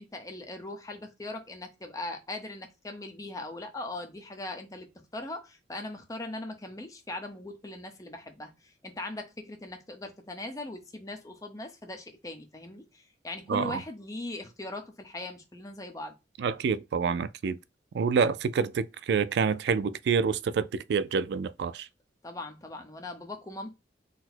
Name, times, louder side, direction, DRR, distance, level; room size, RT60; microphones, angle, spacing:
voice 1, 0.0-4.9 5.1-16.1 22.2-23.7, left 2 dB, 20° left, 0.7 m, -40 dB
voice 2, 13.5-13.8 16.4-17.6 17.9-21.9, right 5 dB, 70° right, 0.3 m, -27 dB
4.0 x 2.1 x 4.3 m
head